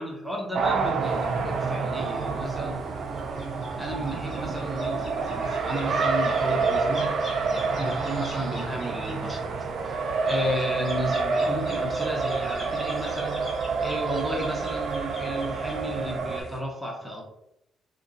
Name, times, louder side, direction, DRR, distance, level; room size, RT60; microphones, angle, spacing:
voice 1, 0.0-2.9 3.8-7.1 7.8-17.2, right 1 dB, 5° right, -2 dB, 0.8 m, -33 dB
Race car auto racing, 0.5-16.4, right 4 dB, 65° right, 0.4 m, -28 dB
sound 1, 1.0-16.6, equal, 30° left, 1.4 m, -43 dB
2.6 x 2.2 x 3.8 m, 0.83 s
cardioid pair, 90°, 0 cm